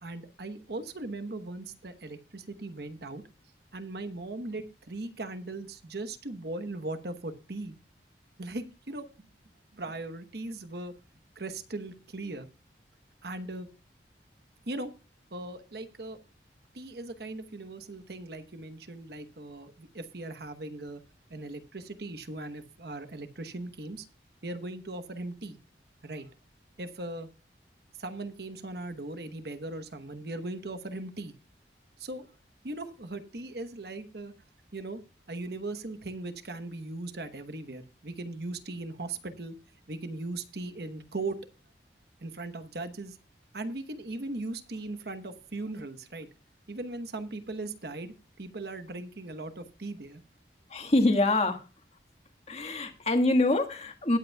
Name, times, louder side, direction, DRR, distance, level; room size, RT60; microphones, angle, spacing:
voice 1, 0.0-3.2 3.7-7.8 8.4-9.1 9.7-10.9 11.4-12.5 13.2-13.7 14.7-14.9 15.3-16.2 16.7-21.0 21.3-24.1 24.4-25.6 26.0-26.3 26.8-27.3 28.0-31.3 32.0-32.3 32.6-34.3 34.7-35.0 35.3-39.6 39.9-41.4 42.2-43.2 43.5-46.3 46.7-50.2, right 2 dB, 65° right, 9 dB, 1.1 m, -38 dB
voice 2, 50.7-51.7 52.5-54.2, left 2 dB, 35° left, 5 dB, 1.5 m, -25 dB
20.5 x 8.0 x 2.3 m, 0.32 s
head